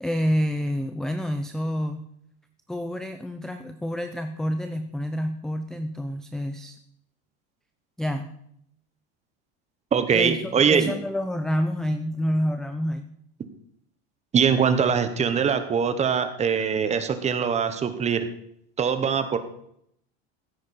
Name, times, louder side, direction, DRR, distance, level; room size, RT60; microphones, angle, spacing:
voice 1, 0.0-2.0 2.7-6.8 8.0-8.3 10.1-13.1, equal, ahead, 8 dB, 0.4 m, -28 dB
voice 2, 9.9-10.9 14.3-18.3 18.8-19.4, right 7 dB, 20° right, 9 dB, 1.0 m, -22 dB
15.0 x 8.6 x 4.3 m, 0.73 s
cardioid pair, 145°, 30 cm